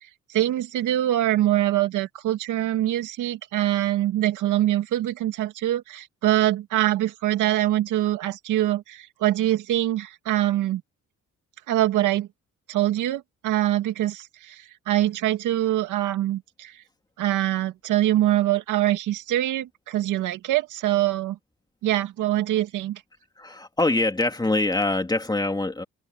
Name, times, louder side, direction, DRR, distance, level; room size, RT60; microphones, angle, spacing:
voice 1, 0.0-10.8 11.7-12.3 12.7-16.8 17.2-21.4 21.8-23.0, right 14 dB, 90° right, 2.3 m, -24 dB
voice 2, 23.4-25.8, left 2 dB, 15° left, 2.7 m, -24 dB
cardioid pair, 90°, 30 cm